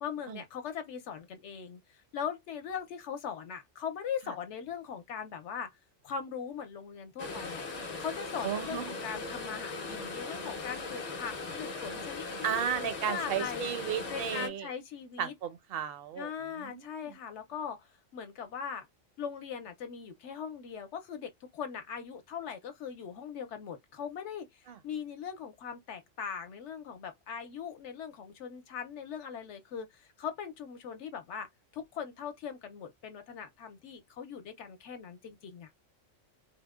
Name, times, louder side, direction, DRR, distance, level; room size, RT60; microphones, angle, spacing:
voice 1, 0.0-5.7 6.0-7.6 8.0-13.7 14.1-15.3 16.2-18.9 19.2-31.5 31.7-35.7, left 7 dB, 70° left, 0.8 m, -40 dB
sound 1, 7.2-14.5, left 3 dB, 50° left, 0.5 m, -39 dB
voice 2, 8.4-8.9 12.4-14.7 15.2-16.3 16.6-17.1 24.7-24.8, right 9 dB, 60° right, 0.6 m, -34 dB
3.6 x 2.1 x 2.3 m
omnidirectional pair, 1.3 m